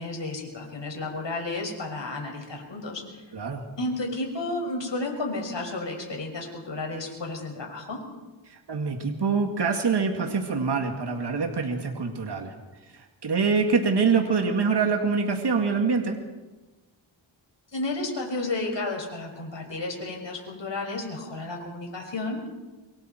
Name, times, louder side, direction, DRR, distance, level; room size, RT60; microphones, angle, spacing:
voice 1, 0.0-3.3 3.8-8.0 17.7-22.5, left 2 dB, 60° left, 1 dB, 6.4 m, -32 dB
voice 2, 3.3-3.7 8.5-12.5 12.9-16.2, right 5 dB, 55° right, 3 dB, 2.3 m, -25 dB
27.0 x 23.5 x 4.6 m, 1.2 s
wide cardioid pair, 75°, 48 cm